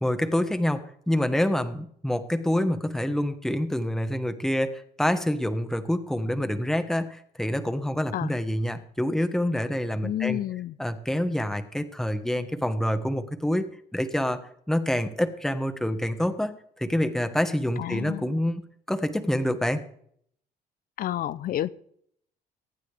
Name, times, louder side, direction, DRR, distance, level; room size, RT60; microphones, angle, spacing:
voice 1, 0.0-10.4 10.8-13.7 13.9-14.4 14.7-16.5 16.8-18.6 18.9-19.8, left 1 dB, ahead, 8 dB, 1.4 m, -27 dB
voice 2, 10.0-10.8 17.8-18.3 21.0-21.7, left 12 dB, 60° left, 17 dB, 0.7 m, -30 dB
23.5 x 9.3 x 3.4 m, 0.65 s
cardioid pair, 110°, 17 cm